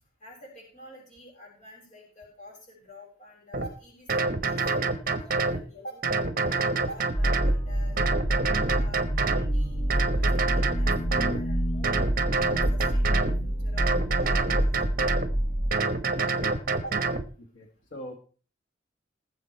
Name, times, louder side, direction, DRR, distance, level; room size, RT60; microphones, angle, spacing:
voice 1, 0.2-6.0 6.4-8.3 8.7-12.0 12.3-14.7 16.7-17.0, equal, 40° left, -1 dB, 6.4 m, -47 dB
sound 1, 3.5-3.7 4.1-5.6 6.0-7.6 8.0-9.5 9.9-11.4 11.8-13.4 13.8-15.3 15.7-17.2, right 4 dB, 50° right, 1.2 m, -27 dB
sound 2, 7.1-15.7, right 1 dB, 25° left, 3.0 m, -27 dB
voice 2, 16.3-16.6 17.5-18.1, equal, 85° left, 3 dB, 2.1 m, -43 dB
19.5 x 7.5 x 4.6 m, 0.39 s
head